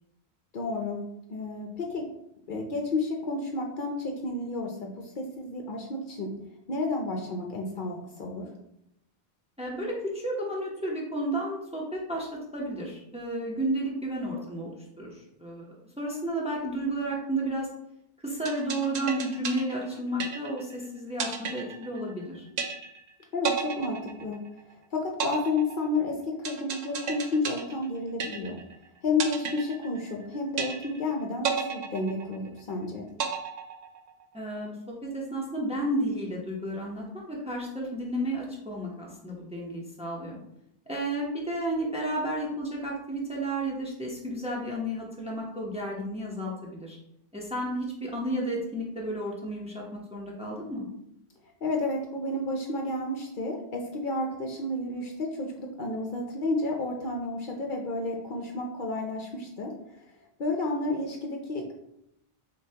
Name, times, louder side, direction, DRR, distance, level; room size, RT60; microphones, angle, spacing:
voice 1, 0.5-1.0 1.3-2.1 2.5-6.3 6.7-8.5 23.3-28.6 29.0-33.1 51.6-60.1 60.4-61.7, left 2 dB, 60° left, 1 dB, 0.7 m, -31 dB
voice 2, 9.6-14.7 15.0-15.7 16.0-17.7 18.2-22.4 34.3-40.4 40.9-47.0 47.3-50.9, right 1 dB, 5° right, -3 dB, 0.7 m, -32 dB
sound 1, 18.5-20.8 21.2-22.2 22.6-23.1 23.4-24.7 25.2-28.8 29.2-30.2 30.6-31.1 31.4-32.7 33.2-34.2, right 6 dB, 55° right, 0.5 m, -33 dB
6.5 x 2.2 x 2.8 m, 0.79 s
omnidirectional pair, 1.0 m